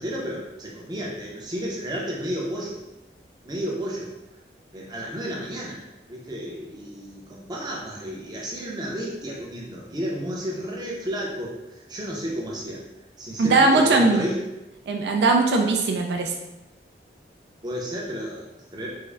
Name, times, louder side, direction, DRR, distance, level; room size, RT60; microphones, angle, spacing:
voice 1, 0.0-2.8 3.4-4.1 4.7-5.8 6.1-12.8 13.2-14.4 17.6-18.9, equal, 25° right, -3 dB, 0.6 m, -32 dB
voice 2, 13.4-14.2 14.9-16.3, right 3 dB, 70° right, 2 dB, 0.3 m, -19 dB
3.6 x 2.1 x 3.3 m, 0.96 s
head